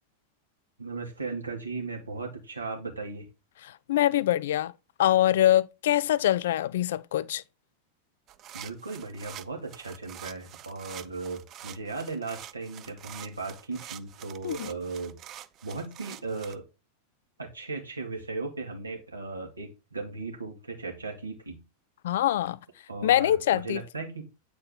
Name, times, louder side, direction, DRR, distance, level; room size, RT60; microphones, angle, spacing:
voice 1, 0.8-3.3 8.5-15.2 15.6-16.7 17.4-21.6 22.9-24.3, right 3 dB, 80° right, 1.9 m, -37 dB
voice 2, 3.6-4.7 5.0-7.4 14.4-14.7 22.0-22.6 23.0-23.8, left 12 dB, 60° left, 0.3 m, -24 dB
sound 1, 8.3-16.6, right 12 dB, 35° right, 0.4 m, -46 dB
8.6 x 4.3 x 3.8 m
figure-of-eight pair, 90°, 0 cm